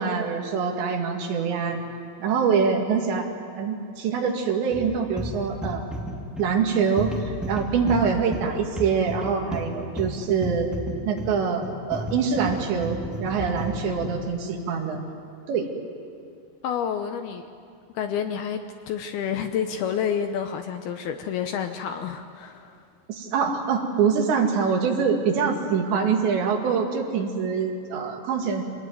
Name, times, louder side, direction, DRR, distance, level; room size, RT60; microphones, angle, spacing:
voice 1, 0.0-1.8 2.2-3.2 3.6-5.9 6.4-10.7 11.1-15.0 15.5-15.7 23.1-28.6, right 6 dB, 75° right, 2 dB, 4.4 m, -24 dB
sound 1, 4.7-14.3, equal, ahead, 1.0 m, -33 dB
voice 2, 16.6-17.5 17.9-22.8, left 8 dB, 75° left, 7 dB, 2.5 m, -29 dB
26.0 x 19.5 x 9.3 m, 2.5 s
omnidirectional pair, 5.2 m